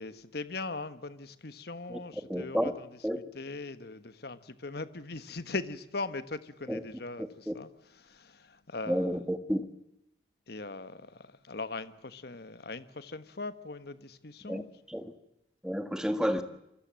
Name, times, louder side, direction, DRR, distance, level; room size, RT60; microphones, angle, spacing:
voice 1, 0.0-2.9 3.3-7.7 8.0-9.1 10.5-14.7, left 3 dB, 55° left, 1.4 m, -40 dB
voice 2, 2.3-2.7 3.0-3.3 6.7-6.8 7.5-7.6 8.9-9.6 14.4-15.1 15.6-16.4, equal, 5° right, 1.6 m, -31 dB
27.5 x 23.5 x 7.6 m
head